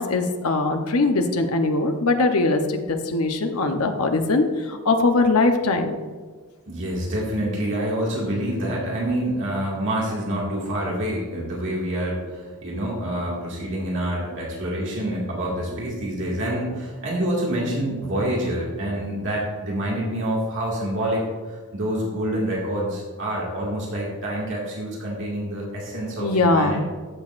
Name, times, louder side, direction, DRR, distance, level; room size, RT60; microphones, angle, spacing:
voice 1, 0.0-5.9 26.2-26.8, left 3 dB, 85° left, 6 dB, 0.9 m, -21 dB
voice 2, 6.7-26.8, right 1 dB, 60° right, -4 dB, 2.1 m, -27 dB
14.5 x 6.3 x 2.5 m, 1.5 s
head